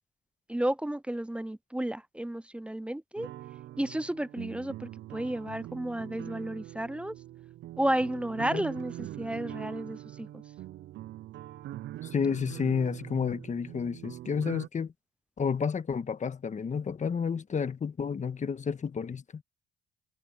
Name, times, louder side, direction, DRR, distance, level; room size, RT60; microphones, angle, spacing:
voice 1, 0.5-3.3 3.8-7.1 7.8-10.4, right 1 dB, 5° right, 0.4 m, -32 dB
sound 1, 3.2-14.7, right 14 dB, 65° right, 0.4 m, -43 dB
voice 2, 12.0-14.9 15.4-19.4, left 6 dB, 35° left, 1.3 m, -31 dB
cardioid pair, 90°, 20 cm